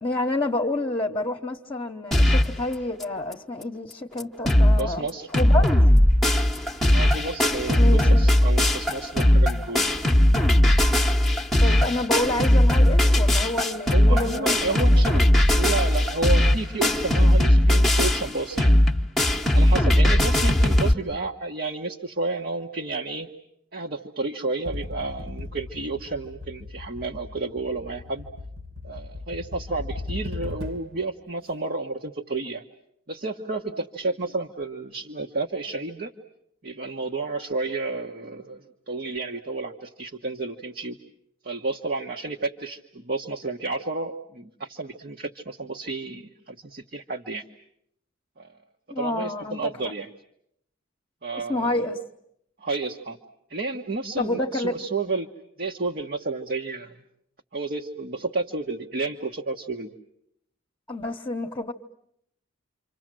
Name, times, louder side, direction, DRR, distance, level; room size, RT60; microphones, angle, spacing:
voice 1, 0.0-5.1 5.3-5.9 7.8-8.3 11.6-15.1 15.6-15.7 48.9-49.7 51.5-52.0 54.2-54.8 60.9-61.7, left 2 dB, 20° left, -1 dB, 1.1 m, -29 dB
sound 1, 2.1-2.6 3.0-3.1 3.3-3.4 3.9-4.0 4.2-4.8 5.1-20.9, left 1 dB, ahead, 1.1 m, -18 dB
voice 2, 4.7-5.3 6.9-9.9 13.9-15.2 15.5-18.7 19.5-23.3 23.7-28.3 28.8-32.6 33.1-36.1 36.6-41.0 41.4-47.4 48.4-48.5 49.0-50.1 51.2-51.9 52.6-53.2 53.5-55.3 55.6-56.9 57.5-59.9, right 3 dB, 45° right, 2 dB, 1.2 m, -31 dB
sound 2, 24.7-31.0, left 2 dB, 65° right, 2.2 m, -37 dB
28.5 x 26.0 x 7.6 m, 0.75 s
head